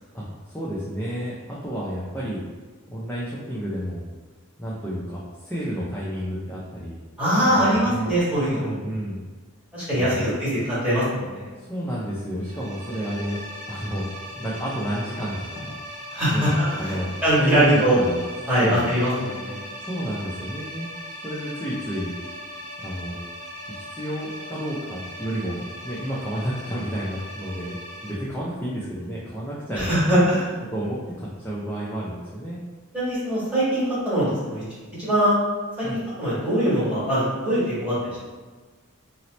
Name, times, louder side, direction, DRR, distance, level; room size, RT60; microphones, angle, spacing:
voice 1, 0.1-1.3 1.6-2.4 2.9-4.0 4.6-6.9 7.5-9.2 9.9-10.4 11.6-13.4 13.7-14.1 14.3-15.8 16.3-16.5 16.8-17.1 17.4-18.2 18.6-18.9 19.8-20.9 21.2-22.1 22.8-23.2 23.7-27.8 28.0-30.3 30.7-32.6 35.8-36.0, equal, 10° left, -7 dB, 0.4 m, -30 dB
voice 2, 7.2-8.7 9.7-10.1 10.4-10.6 10.8-11.5 16.1-18.0 18.5-19.6 29.8-30.5 32.9-34.6 35.0-35.4 35.8-35.9 36.2-37.9, equal, 5° right, -11 dB, 1.3 m, -22 dB
sound 1, 12.4-28.1, equal, 35° right, 0.7 m, -39 dB
2.8 x 2.0 x 3.9 m, 1.4 s
head